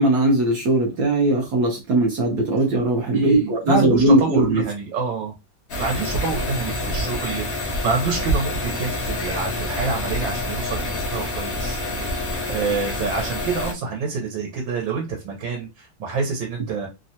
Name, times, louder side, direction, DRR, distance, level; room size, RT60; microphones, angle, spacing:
voice 1, 0.0-4.6, right 1 dB, 65° right, 1.1 m, -19 dB
voice 2, 3.1-5.3 5.7-16.9, right 4 dB, 85° right, 1.5 m, -27 dB
sound 1, 5.7-13.7, left 1 dB, 60° left, 0.6 m, -27 dB
3.3 x 2.2 x 2.6 m
omnidirectional pair, 2.0 m